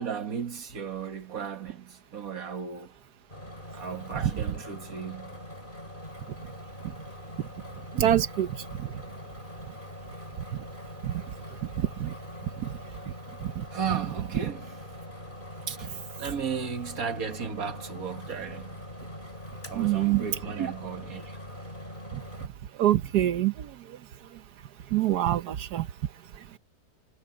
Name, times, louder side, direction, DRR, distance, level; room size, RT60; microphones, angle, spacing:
voice 1, 0.0-2.9 3.7-5.4 13.7-14.8 15.7-18.8 19.7-21.4, right 7 dB, 65° right, 2.1 m, -35 dB
sound 1, 3.3-22.5, left 1 dB, 30° left, 5.2 m, -43 dB
voice 2, 7.9-8.6 12.0-12.1 19.7-20.2 20.6-20.7 22.8-23.7 24.9-25.9, right 12 dB, 85° right, 1.4 m, -24 dB
omnidirectional pair, 1.7 m